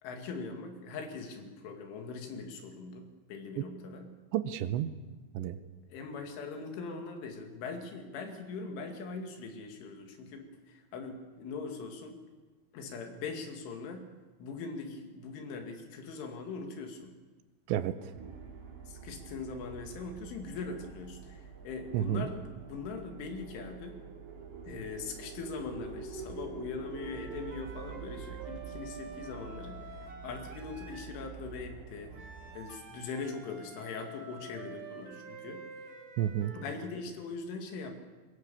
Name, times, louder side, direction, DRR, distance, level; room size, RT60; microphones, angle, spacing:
voice 1, 0.0-4.1 5.9-12.2 12.7-14.1 14.4-17.1 18.9-24.0 24.6-32.1 32.5-35.9 36.5-37.9, left 4 dB, 80° left, 4 dB, 4.7 m, -41 dB
voice 2, 4.3-4.9 5.3-5.6 17.7-18.1 21.9-22.3 36.2-36.5, right 11 dB, 80° right, 11 dB, 2.9 m, -31 dB
sound 1, 18.1-32.6, right 6 dB, 60° right, 5.0 m, -47 dB
sound 2, 26.9-31.2 32.1-36.8, right 4 dB, 45° right, 2.9 m, -48 dB
22.5 x 21.5 x 7.0 m, 1.3 s
omnidirectional pair, 5.5 m